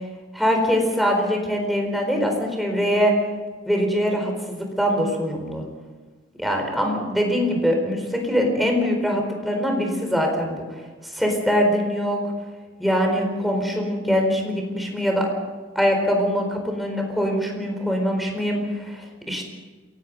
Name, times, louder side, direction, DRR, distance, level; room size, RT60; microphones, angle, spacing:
voice 1, 0.3-3.1 3.6-5.6 6.4-10.6 11.0-12.2 12.8-15.3 15.7-19.4, equal, ahead, 2 dB, 4.4 m, -23 dB
26.5 x 18.0 x 5.4 m, 1.4 s
head